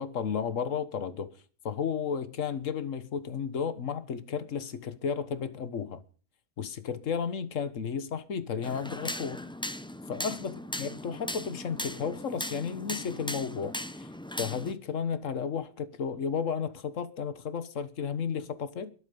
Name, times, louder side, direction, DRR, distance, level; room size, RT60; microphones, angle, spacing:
voice 1, 0.0-1.3 1.6-6.0 6.6-9.4 10.1-14.1 14.4-18.9, left 6 dB, 65° left, 1.7 m, -33 dB
sound 1, 8.6-14.7, left 1 dB, 5° left, 0.5 m, -38 dB
22.0 x 8.7 x 5.4 m
omnidirectional pair, 1.5 m